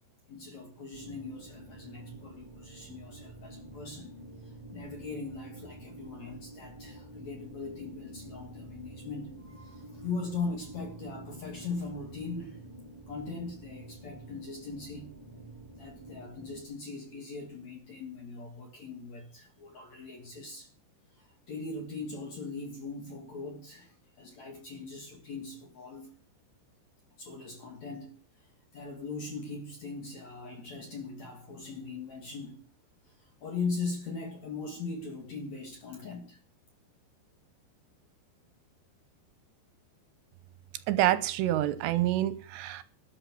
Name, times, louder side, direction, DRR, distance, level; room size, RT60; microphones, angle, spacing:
voice 1, 0.3-4.1 4.4-15.1 15.8-20.7 21.1-26.1 27.2-32.6 33.1-36.4, left 4 dB, 55° left, 2.1 m, -40 dB
sound 1, 0.9-16.6, right 1 dB, 10° right, 1.3 m, -48 dB
voice 2, 40.9-42.8, right 14 dB, 80° right, 2.8 m, -27 dB
12.5 x 10.5 x 6.0 m
omnidirectional pair, 5.3 m